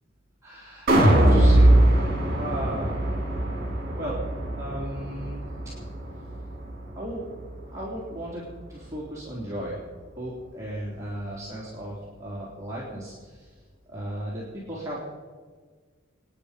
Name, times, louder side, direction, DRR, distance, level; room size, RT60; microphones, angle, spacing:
voice 1, 0.4-3.1 4.0-4.3 4.6-5.4 6.9-7.3 7.7-9.8 10.2-13.5 13.9-15.1, right 1 dB, 15° right, -7 dB, 3.3 m, -35 dB
sound 1, 0.9-7.1 7.5-7.6, right 1 dB, 50° right, 3.9 m, -21 dB
26.5 x 10.0 x 5.1 m, 1.5 s
head